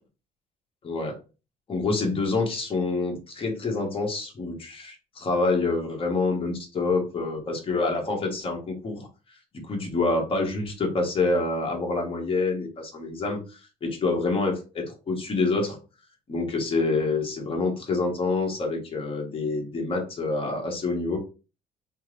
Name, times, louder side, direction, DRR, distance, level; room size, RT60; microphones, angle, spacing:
voice 1, 0.8-1.2 1.7-9.1 9.6-15.8 16.3-21.2, left 3 dB, 35° left, 1 dB, 1.2 m, -27 dB
3.3 x 2.0 x 3.2 m, 0.32 s
cardioid pair, 100°, 16 cm